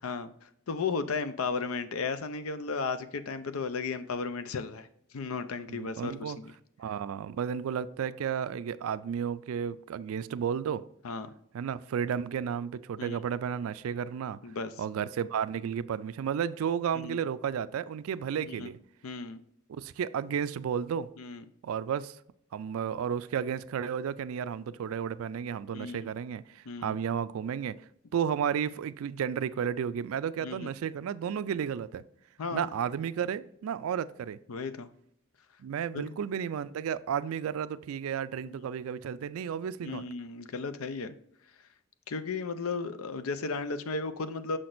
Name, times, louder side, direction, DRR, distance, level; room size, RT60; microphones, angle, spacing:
voice 1, 0.0-4.9 5.1-6.5 11.0-11.3 13.0-13.2 14.4-14.8 16.9-17.2 18.5-18.7 19.0-19.4 21.2-21.4 25.7-26.1 26.7-27.0 30.4-30.7 32.4-32.7 34.5-34.9 35.9-36.1 38.4-38.5 39.8-41.1 42.1-44.6, left 4 dB, 80° left, 0.5 m, -35 dB
voice 2, 5.7-6.4 6.8-10.8 11.5-14.4 14.8-18.8 19.7-21.1 21.6-22.2 22.5-27.8 28.1-32.0 32.5-34.4 35.6-40.0, right 8 dB, 75° right, 0.3 m, -32 dB
6.3 x 5.9 x 2.5 m
head